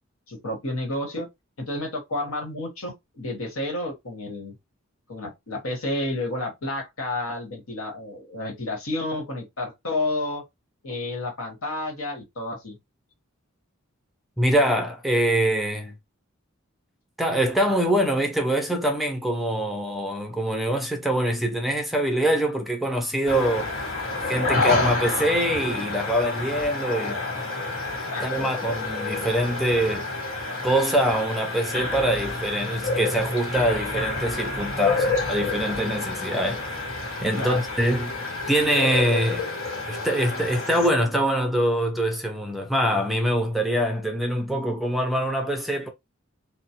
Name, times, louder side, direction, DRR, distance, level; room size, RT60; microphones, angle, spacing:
voice 1, 0.3-1.3 1.6-4.5 5.1-10.4 10.8-12.8 28.1-28.2 37.4-37.6, left 2 dB, 85° left, 1.2 m, -30 dB
voice 2, 14.4-15.9 17.2-23.7 24.2-27.2 28.2-30.1 30.6-36.8 37.2-39.5 39.9-45.9, right 1 dB, ahead, 0.4 m, -24 dB
sound 1, 23.3-40.9, left 3 dB, 70° left, 1.3 m, -29 dB
3.0 x 2.1 x 2.8 m
head